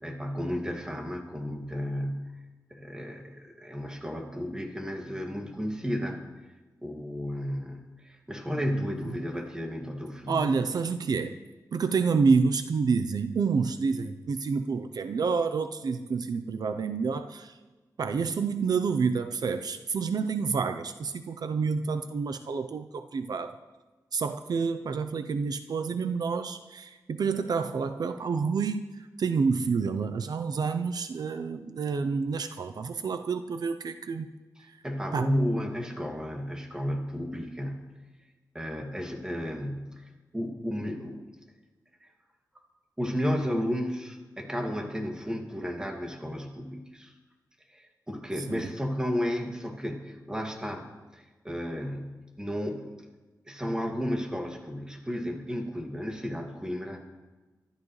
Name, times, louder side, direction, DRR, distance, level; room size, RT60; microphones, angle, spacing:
voice 1, 0.0-2.3 2.7-6.2 6.8-10.6 34.8-37.8 38.5-41.3 42.0-42.1 43.0-47.1 47.7-50.9 51.1-52.9 53.5-57.0, equal, 10° right, 1 dB, 2.2 m, -33 dB
voice 2, 10.3-11.3 11.7-17.6 18.0-23.6 24.1-28.9 29.2-34.3 35.1-35.3 48.5-48.6, right 5 dB, 70° right, 9 dB, 0.6 m, -28 dB
24.5 x 12.5 x 3.2 m, 1.2 s
wide cardioid pair, 120°, 7 cm